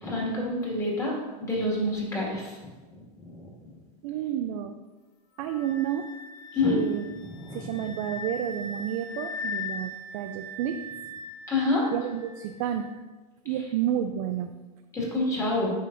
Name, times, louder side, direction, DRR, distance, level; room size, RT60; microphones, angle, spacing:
voice 1, 0.0-1.1 1.4-2.6 3.2-3.5 6.5-6.8 7.4-7.7 11.5-11.8 14.9-15.7, left 2 dB, 15° left, -4 dB, 2.0 m, -27 dB
voice 2, 4.0-4.7 5.4-6.1 6.6-7.1 7.5-10.8 11.9-12.9 13.5-14.5, right 10 dB, 55° right, 7 dB, 0.4 m, -30 dB
Wind instrument woodwind instrument, 5.4-12.8, left 3 dB, 45° left, 1.2 m, -40 dB
9.0 x 5.1 x 2.6 m, 1.2 s
supercardioid pair, 135°, 21 cm